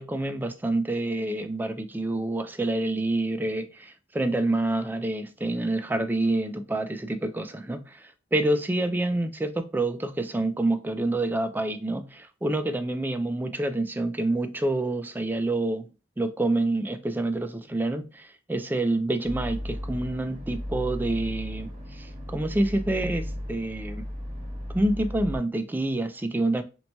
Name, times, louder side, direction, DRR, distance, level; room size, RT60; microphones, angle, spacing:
voice 1, 0.0-15.9 16.2-24.0 24.7-26.6, right 2 dB, 10° right, 0.3 m, -27 dB
sound 1, 19.2-25.4, equal, 40° right, 1.6 m, -35 dB
4.4 x 2.1 x 2.7 m
head